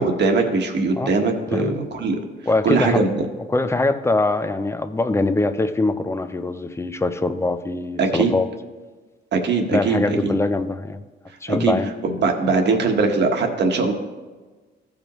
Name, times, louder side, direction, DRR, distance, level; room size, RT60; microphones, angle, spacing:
voice 1, 0.0-2.2 2.6-3.3 8.0-8.3 9.3-10.4 11.5-11.8 12.0-13.9, right 4 dB, 60° right, 4 dB, 1.4 m, -21 dB
voice 2, 2.5-3.0 3.5-8.5 9.7-11.0 11.4-11.9, left 2 dB, 15° left, 10 dB, 0.6 m, -22 dB
14.5 x 5.1 x 3.1 m, 1.3 s
cardioid pair, 90°, 20 cm